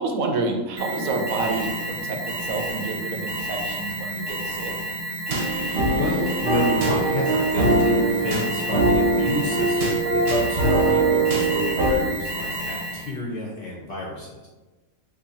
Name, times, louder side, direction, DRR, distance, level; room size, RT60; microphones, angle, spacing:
voice 1, 0.0-4.7, right 3 dB, 75° right, 2 dB, 1.0 m, -28 dB
Alarm, 0.8-13.2, right 1 dB, 35° right, 0.4 m, -31 dB
sound 1, 5.3-11.9, right 3 dB, 50° right, 0.8 m, -22 dB
voice 2, 5.7-14.5, left 2 dB, 55° left, -3 dB, 0.6 m, -30 dB
2.8 x 2.6 x 3.9 m, 1.2 s
omnidirectional pair, 1.5 m